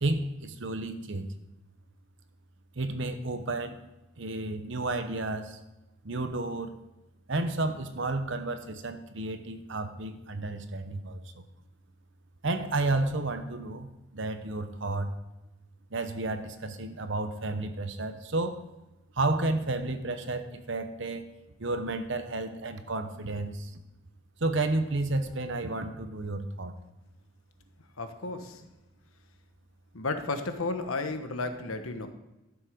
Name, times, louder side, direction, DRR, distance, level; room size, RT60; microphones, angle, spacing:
voice 1, 0.0-1.3 2.8-3.8 4.2-5.6 6.0-6.8 7.3-11.4 12.4-15.1 15.9-18.6 19.1-21.3 21.6-23.8 24.4-26.7, right 2 dB, 60° right, 9 dB, 0.9 m, -31 dB
voice 2, 28.0-28.6 29.9-32.1, left 3 dB, 85° left, 7 dB, 1.2 m, -33 dB
13.0 x 7.2 x 5.1 m, 0.99 s
head